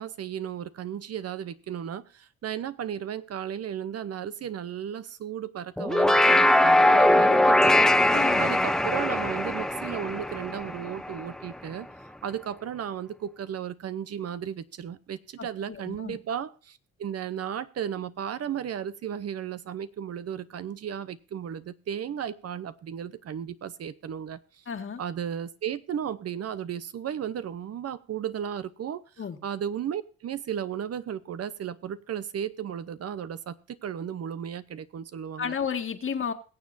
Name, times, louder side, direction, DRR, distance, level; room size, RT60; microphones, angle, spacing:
voice 1, 0.0-24.6 25.0-29.0 29.4-35.6, right 9 dB, 55° right, 0.8 m, -35 dB
sound 1, 5.8-11.3, left 1 dB, ahead, 0.6 m, -21 dB
voice 2, 8.1-8.5 15.4-16.2 24.7-25.0 29.2-29.4 35.4-36.3, left 7 dB, 45° left, 1.8 m, -32 dB
22.0 x 7.4 x 2.6 m
cardioid pair, 90°, 30 cm